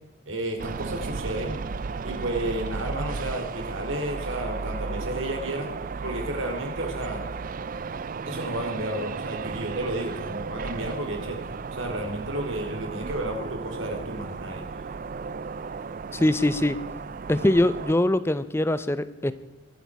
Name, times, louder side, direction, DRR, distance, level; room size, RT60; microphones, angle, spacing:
voice 1, 0.3-1.6 2.0-5.7 6.0-7.3 8.2-11.4 11.8-14.7, right 1 dB, 75° right, 4 dB, 3.0 m, -32 dB
sound 1, 0.6-18.0, right 4 dB, 45° right, 0.4 m, -34 dB
voice 2, 16.1-16.8 17.3-19.3, left 1 dB, 10° left, 14 dB, 0.5 m, -22 dB
23.5 x 8.4 x 4.7 m, 1.0 s
head